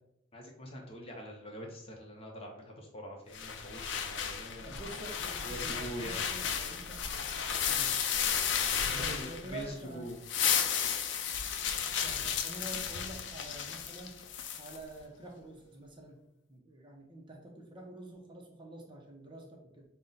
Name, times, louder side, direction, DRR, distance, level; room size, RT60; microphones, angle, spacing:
voice 1, 0.3-4.8 5.4-6.3 8.6-10.2, equal, 30° left, 0 dB, 0.7 m, -44 dB
sound 1, 3.3-9.7 10.1-14.8, left 8 dB, 65° left, 0.4 m, -33 dB
voice 2, 4.6-7.0 7.6-8.0 8.8-10.1 12.0-14.2 14.6-16.2 16.5-19.8, right 2 dB, 25° right, 1 dB, 0.6 m, -47 dB
5.4 x 2.1 x 3.8 m, 0.80 s
head